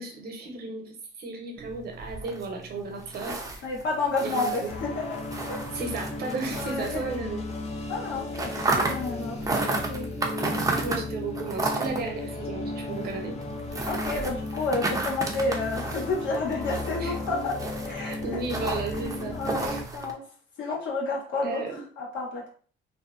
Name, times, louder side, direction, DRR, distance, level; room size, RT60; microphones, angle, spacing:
voice 1, 0.0-3.6 4.2-4.7 5.7-7.4 8.8-8.9 10.2-13.4 17.0-17.1 18.0-19.8 21.4-21.8, right 3 dB, 55° right, 3 dB, 0.8 m, -34 dB
sound 1, 1.6-7.6 7.8-20.1, right 3 dB, 15° right, 0.5 m, -33 dB
voice 2, 3.6-5.2 5.5-5.6 6.5-7.0 7.9-9.4 9.7-10.1 10.8-11.1 13.8-17.6 17.8-18.4 19.3-20.2 20.6-22.5, left 3 dB, 75° left, -2 dB, 1.1 m, -30 dB
sound 2, 4.7-19.8, left 2 dB, 35° left, 0.4 m, -35 dB
2.6 x 2.0 x 2.4 m, 0.43 s
cardioid pair, 100°, 20 cm